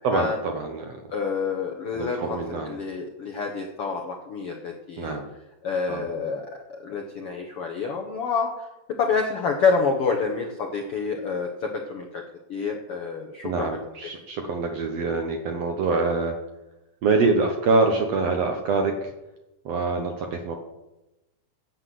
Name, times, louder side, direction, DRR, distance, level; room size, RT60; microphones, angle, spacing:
voice 1, 0.0-1.0 1.9-2.8 5.0-5.3 5.9-6.0 13.4-16.4 17.0-19.1 19.6-20.6, right 3 dB, 70° right, 4 dB, 1.6 m, -25 dB
voice 2, 1.1-5.2 5.6-8.7 9.0-12.2 12.5-13.8, left 5 dB, 70° left, 2 dB, 1.3 m, -28 dB
9.5 x 8.1 x 7.6 m, 0.97 s
omnidirectional pair, 4.0 m